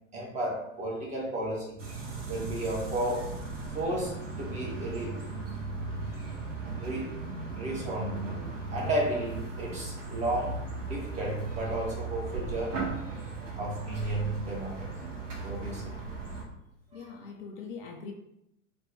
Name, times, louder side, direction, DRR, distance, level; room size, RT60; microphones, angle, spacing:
voice 1, 0.1-1.8 2.3-3.3 3.7-5.2 6.8-7.2 7.6-8.3 8.7-13.0 13.6-14.9 15.4-15.9 17.0-17.1, right 1 dB, 20° right, -3 dB, 0.7 m, -33 dB
sound 1, 1.8-16.5, right 3 dB, 65° right, 0.9 m, -37 dB
voice 2, 16.9-18.1, left 5 dB, 45° left, 1 dB, 0.5 m, -42 dB
2.5 x 2.2 x 3.3 m, 0.81 s
figure-of-eight pair, 90°, 39 cm